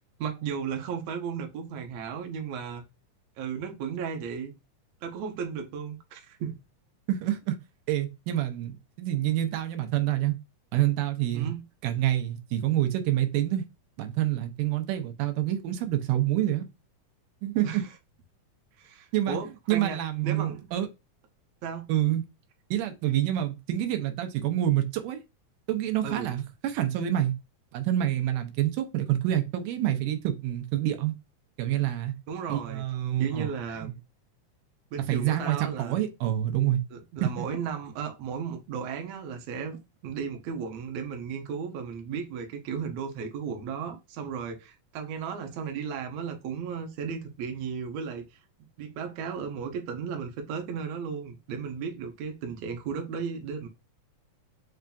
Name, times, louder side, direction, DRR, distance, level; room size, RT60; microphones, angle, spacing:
voice 1, 0.2-2.8 3.4-4.5 5.0-6.6 11.3-11.6 17.6-17.9 18.8-20.7 21.6-21.9 26.0-26.3 32.3-32.8 33.2-33.9 34.9-36.0 36.9-39.8 40.0-48.2 48.8-53.7, right 6 dB, 70° right, 1.7 m, -35 dB
voice 2, 7.1-7.6 7.9-10.4 10.7-11.5 11.8-13.7 14.0-16.7 17.4-17.8 19.1-19.4 19.7-20.9 21.9-22.2 22.7-25.2 25.7-27.3 27.7-31.1 31.6-32.1 32.5-33.5 33.8-33.9 35.1-36.8 37.2-37.5, right 12 dB, 90° right, 2.2 m, -27 dB
5.4 x 2.5 x 2.2 m
omnidirectional pair, 3.6 m